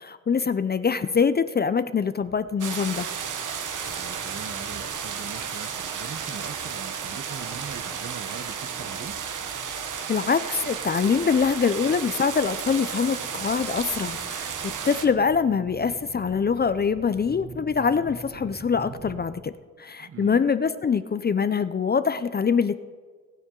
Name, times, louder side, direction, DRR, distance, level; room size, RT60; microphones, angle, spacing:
voice 1, 0.0-3.1 10.1-19.5 19.8-22.8, left 6 dB, 35° left, 13 dB, 0.4 m, -24 dB
sound 1, 2.2-19.2, right 2 dB, 70° right, 2.5 m, -47 dB
sound 2, 2.6-15.1, right 7 dB, 90° right, 1.0 m, -33 dB
voice 2, 3.8-9.2 20.0-20.5, right 6 dB, 50° right, 11 dB, 0.8 m, -41 dB
20.0 x 9.2 x 3.8 m, 1.5 s
wide cardioid pair, 135°, 30 cm